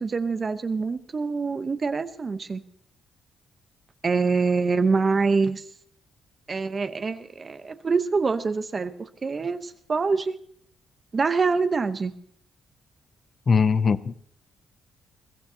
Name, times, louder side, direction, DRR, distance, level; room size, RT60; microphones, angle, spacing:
voice 1, 0.0-2.6 4.0-5.6 6.5-10.4 11.1-12.1, right 4 dB, 35° right, 0.9 m, -25 dB
voice 2, 13.5-14.1, left 5 dB, 40° left, 0.6 m, -20 dB
22.0 x 15.0 x 2.9 m
cardioid pair, 95°, 0 cm